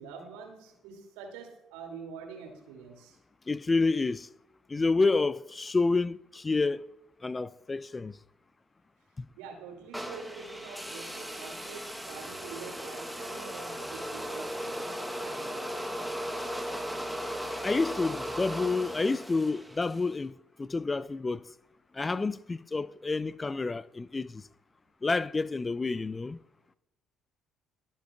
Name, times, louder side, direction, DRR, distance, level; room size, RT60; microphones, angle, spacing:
voice 1, 0.0-3.2 9.4-15.9, right 5 dB, 70° right, 2.6 m, -46 dB
voice 2, 3.5-4.3 4.7-6.9 7.2-8.2 9.2-9.3 17.6-21.4 21.9-24.4 25.0-26.4, left 3 dB, 25° left, 0.4 m, -29 dB
sound 1, 9.9-20.1, equal, 5° right, 1.1 m, -37 dB
23.0 x 8.6 x 2.4 m
figure-of-eight pair, 50°, 0 cm